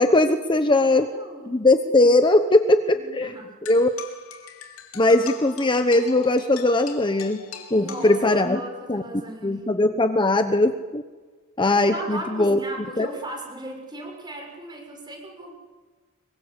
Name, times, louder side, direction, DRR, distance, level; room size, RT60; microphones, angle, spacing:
voice 1, 0.0-1.1 1.5-3.3 3.7-3.9 5.0-7.4 7.7-8.6 8.9-9.0 9.4-11.0 11.6-12.6 13.0-13.1, left 2 dB, 20° left, 8 dB, 1.0 m, -19 dB
voice 2, 0.8-1.6 2.9-3.5 7.7-9.6 11.8-15.5, right 1 dB, 20° right, 2 dB, 6.7 m, -37 dB
sound 1, 3.6-8.7, left 7 dB, 75° left, 3.4 m, -41 dB
25.5 x 23.5 x 8.2 m, 1.4 s
head